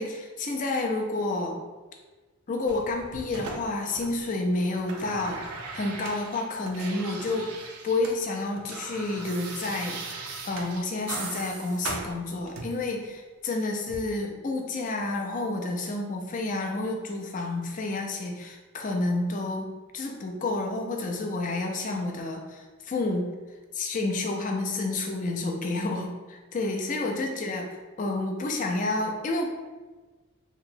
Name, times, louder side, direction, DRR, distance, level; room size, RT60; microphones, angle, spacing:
voice 1, 0.0-1.6 2.5-5.4 5.7-7.5 7.8-10.0 10.4-23.3 23.7-27.6 28.0-29.4, left 2 dB, 35° left, 2 dB, 0.4 m, -30 dB
sound 1, 2.7-4.4 4.6-8.2 8.4-12.9 13.9-14.0, right 3 dB, 90° right, 0.5 m, -39 dB
2.9 x 2.8 x 2.6 m, 1.3 s
head